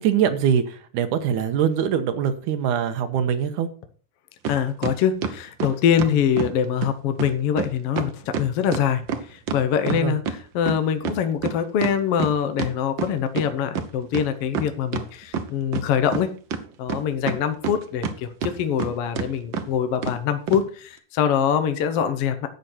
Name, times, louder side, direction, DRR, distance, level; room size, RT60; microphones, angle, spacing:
voice 1, 0.0-3.7 9.9-10.2, right 8 dB, 85° right, 8 dB, 2.5 m, -23 dB
sound 1, 4.4-4.6 4.8-6.5 6.8-6.9 7.2-7.3 7.6-7.7 8.0-10.4 10.7-13.5 13.7-13.8 14.1-15.1 15.3-16.2 16.5-18.1 18.4-18.9 19.2-19.3 19.5-19.7 20.0-20.2 20.5-20.6, right 6 dB, 65° right, 1.2 m, -28 dB
voice 2, 4.5-9.0 9.3-16.3 16.8-22.5, left 8 dB, 65° left, 9 dB, 1.6 m, -24 dB
12.0 x 8.2 x 4.3 m, 0.42 s
omnidirectional pair, 3.5 m